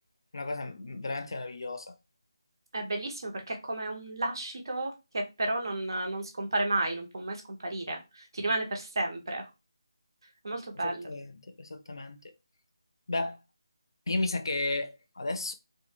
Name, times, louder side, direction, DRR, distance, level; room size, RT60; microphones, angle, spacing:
voice 1, 0.3-1.9 10.7-12.2 13.1-13.4 14.1-15.5, left 2 dB, 65° left, 0.4 m, -33 dB
voice 2, 2.7-9.5 10.4-11.1, right 2 dB, 55° right, 0.7 m, -32 dB
2.1 x 2.0 x 3.1 m
figure-of-eight pair, 165°, 3 cm